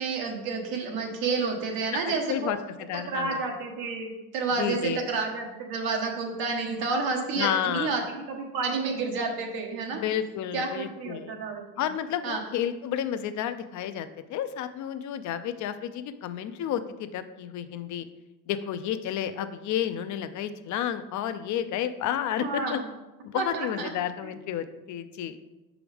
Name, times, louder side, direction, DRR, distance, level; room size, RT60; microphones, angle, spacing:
voice 1, 0.0-2.5 2.9-8.0 8.3-10.0 10.5-11.6 12.2-12.4 22.4-22.9 23.3-23.9, right 4 dB, 85° right, 2 dB, 1.2 m, -30 dB
voice 2, 2.9-3.4 4.6-5.0 7.4-7.9 9.9-11.4 11.8-18.1 18.5-22.8 23.2-25.4, left 10 dB, 55° left, 10 dB, 0.4 m, -31 dB
6.1 x 4.9 x 3.3 m, 1.1 s
cardioid pair, 130°, 36 cm